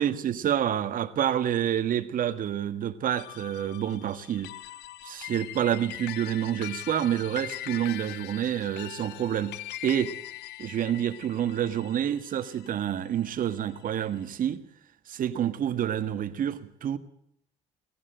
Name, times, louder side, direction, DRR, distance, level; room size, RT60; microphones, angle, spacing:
voice 1, 0.0-4.5 5.0-10.1 10.6-14.6 15.1-17.0, right 10 dB, 55° right, 1.7 m, -28 dB
sound 1, 3.1-13.7, left 16 dB, 80° left, 0.9 m, -42 dB
19.0 x 15.0 x 8.9 m
cardioid pair, 110°, 17 cm